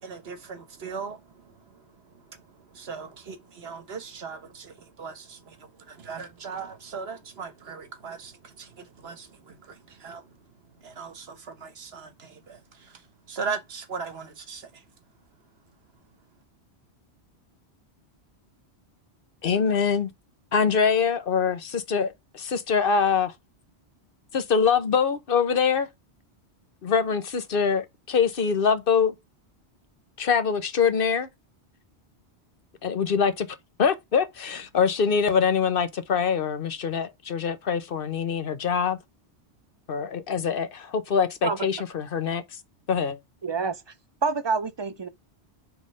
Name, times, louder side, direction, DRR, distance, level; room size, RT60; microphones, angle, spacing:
voice 1, 0.0-1.8 2.3-2.4 2.7-10.2 10.8-13.0 13.3-14.8, right 5 dB, 65° right, 1.3 m, -39 dB
voice 2, 19.4-20.1 20.5-23.3 24.3-25.9 26.8-29.1 30.2-31.3 32.8-33.5 33.8-39.0 39.9-42.4 42.9-43.2, left 6 dB, 55° left, 1.0 m, -24 dB
voice 3, 43.4-43.8 44.2-45.1, right 4 dB, 35° right, 0.4 m, -27 dB
5.2 x 3.6 x 5.2 m
omnidirectional pair, 1.1 m